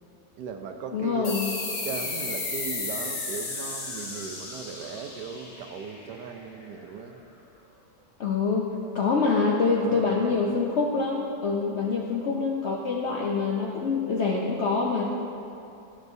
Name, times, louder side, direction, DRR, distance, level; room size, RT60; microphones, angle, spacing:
voice 1, 0.4-1.4 1.8-7.2 9.8-10.4, right 6 dB, 75° right, 5 dB, 1.2 m, -38 dB
voice 2, 0.9-1.6 8.2-8.7 8.9-15.1, left 4 dB, 65° left, -2 dB, 0.6 m, -25 dB
sound 1, 1.2-6.4, left 3 dB, 85° left, 1.9 m, -34 dB
13.0 x 6.3 x 2.6 m, 2.8 s
omnidirectional pair, 1.8 m